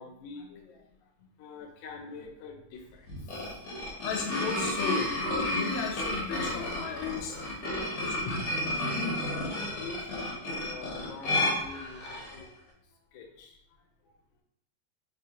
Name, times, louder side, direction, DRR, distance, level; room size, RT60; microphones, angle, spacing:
voice 1, 0.0-3.7 7.4-9.1 9.8-14.2, left 4 dB, 75° left, 1 dB, 1.3 m, -47 dB
sound 1, 3.1-12.4, left 1 dB, 55° left, 1.1 m, -32 dB
voice 2, 4.0-7.4 8.0-8.4, left 5 dB, 90° left, 2 dB, 1.5 m, -35 dB
3.9 x 2.7 x 2.8 m, 0.75 s
omnidirectional pair, 2.3 m